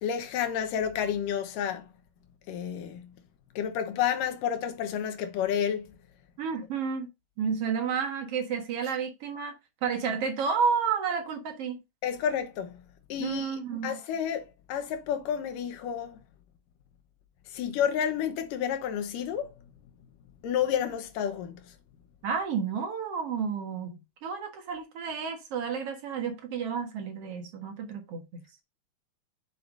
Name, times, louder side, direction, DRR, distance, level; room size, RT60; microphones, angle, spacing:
voice 1, 0.0-1.8 2.5-3.1 3.6-5.9 12.0-12.8 13.1-16.2 17.5-19.5 20.4-21.6, left 8 dB, 85° left, 2.7 m, -30 dB
voice 2, 6.4-7.1 7.4-9.5 9.8-11.8 13.2-14.0 22.2-24.0 24.2-28.4, right 6 dB, 55° right, 2.2 m, -31 dB
7.6 x 7.1 x 2.6 m
omnidirectional pair, 3.7 m